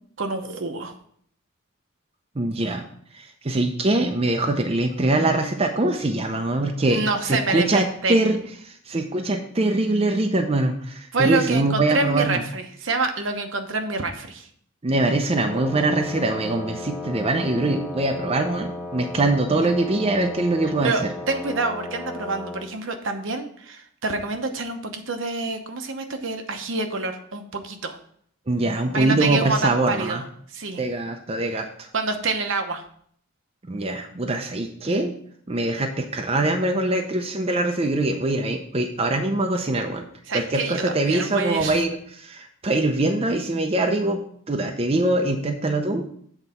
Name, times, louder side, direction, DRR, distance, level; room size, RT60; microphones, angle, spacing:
voice 1, 0.2-0.9 6.9-8.2 11.1-14.5 19.5-19.7 20.8-28.0 28.9-30.2 30.5-30.8 31.9-32.8 40.3-41.8, right 3 dB, 65° right, 5 dB, 0.9 m, -27 dB
voice 2, 2.4-2.8 3.1-7.0 7.3-8.4 8.6-12.4 14.8-20.9 28.5-30.2 30.8-31.9 33.7-35.1 35.5-40.0 40.3-44.2 44.5-46.1, right 2 dB, 30° right, 4 dB, 0.6 m, -23 dB
Wind instrument woodwind instrument, 15.3-22.7, left 2 dB, 10° left, 1.2 m, -35 dB
8.1 x 4.0 x 5.6 m, 0.63 s
head